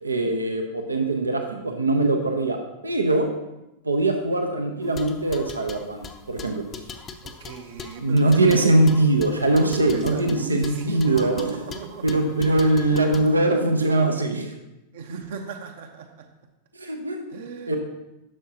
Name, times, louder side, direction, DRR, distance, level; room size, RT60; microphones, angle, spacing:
voice 1, 0.0-3.3 3.8-6.6 8.0-11.5 12.0-14.5 16.8-17.4 17.7-17.8, right 2 dB, 80° right, 5 dB, 0.8 m, -22 dB
sound 1, 4.8-13.3, left 5 dB, 25° left, 0.7 m, -40 dB
voice 2, 7.2-9.0 9.6-12.2 12.9-13.3 14.9-16.3 17.3-17.8, right 5 dB, 60° right, 5 dB, 0.9 m, -37 dB
11.0 x 6.4 x 2.9 m, 0.94 s
figure-of-eight pair, 90°, 0 cm